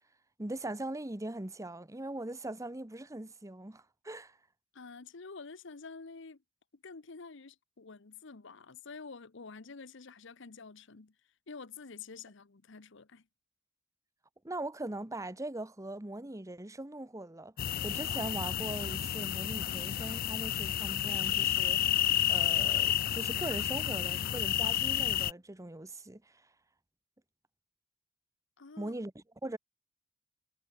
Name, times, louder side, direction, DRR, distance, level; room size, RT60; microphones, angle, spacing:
voice 1, 0.4-4.4 14.4-26.5 28.8-29.6, right 1 dB, 15° right, 1.0 m, -41 dB
voice 2, 4.7-6.4 6.7-11.1 11.5-13.3 28.6-28.9, left 4 dB, 65° left, 0.9 m, -48 dB
sound 1, 17.6-25.3, left 11 dB, 45° left, 0.3 m, -31 dB
head